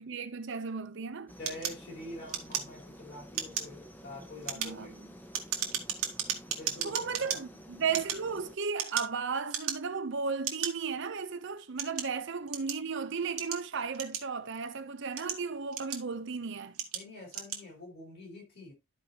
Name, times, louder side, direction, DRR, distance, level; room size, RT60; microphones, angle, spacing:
voice 1, 0.0-1.3 4.6-5.1 6.8-16.8, right 5 dB, 55° right, 0.6 m, -35 dB
sound 1, 1.3-8.6, equal, 10° left, 0.7 m, -51 dB
voice 2, 1.4-4.9 6.6-7.4 16.9-18.7, left 1 dB, 45° left, 4.2 m, -46 dB
sound 2, 1.5-3.0 3.3-3.8 4.3-7.4 7.9-9.2 9.5-10.0 10.4-10.7 11.4-12.9 13.4-14.5 15.0-16.2 16.7-17.0 17.3-17.6, right 9 dB, 90° right, 1.6 m, -35 dB
13.0 x 4.8 x 2.8 m
head